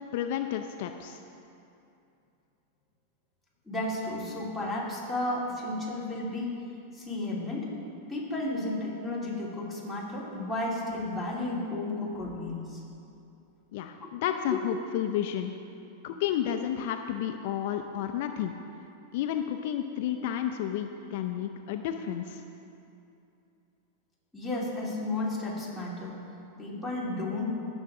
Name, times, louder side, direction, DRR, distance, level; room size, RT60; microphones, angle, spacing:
voice 1, 0.1-1.2 13.7-15.5 16.0-18.5 19.1-22.4, left 10 dB, 60° left, 6 dB, 0.5 m, -31 dB
voice 2, 3.7-6.5 6.9-7.7 8.1-12.8 14.0-14.1 14.5-14.6 24.3-26.2 26.6-27.6, left 2 dB, ahead, -6 dB, 2.8 m, -33 dB
18.0 x 7.1 x 3.8 m, 2.7 s
supercardioid pair, 135°, 0 cm